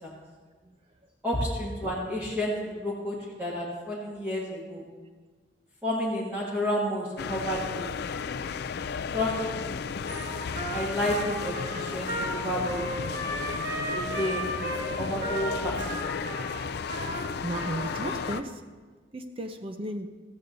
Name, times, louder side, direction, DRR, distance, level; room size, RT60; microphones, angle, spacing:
voice 1, 1.2-4.9 5.8-7.9 9.1-9.9 10.7-13.2 13.9-14.5 15.0-15.9, left 1 dB, 10° right, -6 dB, 1.8 m, -31 dB
sound 1, 7.2-18.4, left 6 dB, 60° left, 0.4 m, -34 dB
Trumpet, 10.1-18.3, right 1 dB, 50° right, 2.1 m, -35 dB
voice 2, 17.4-18.6 19.1-20.1, right 1 dB, 30° right, 6 dB, 0.6 m, -34 dB
14.5 x 14.5 x 2.7 m, 1.4 s
head